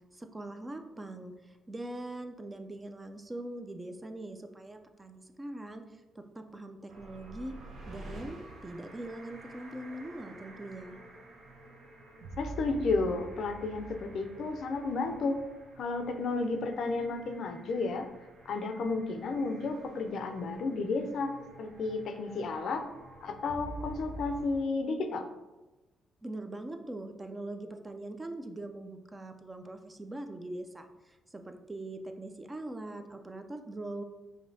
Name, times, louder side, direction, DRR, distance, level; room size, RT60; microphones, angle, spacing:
voice 1, 0.1-5.8 6.1-7.6 7.9-11.0 26.2-34.0, right 1 dB, 20° right, 6 dB, 0.3 m, -42 dB
sound 1, 6.9-24.6, right 2 dB, 60° right, 0.6 m, -48 dB
voice 2, 12.4-15.4 15.8-18.1 18.5-22.9 23.2-25.3, left 3 dB, 65° left, 7 dB, 0.4 m, -32 dB
5.0 x 2.7 x 2.6 m, 1.1 s
cardioid pair, 100°, 0 cm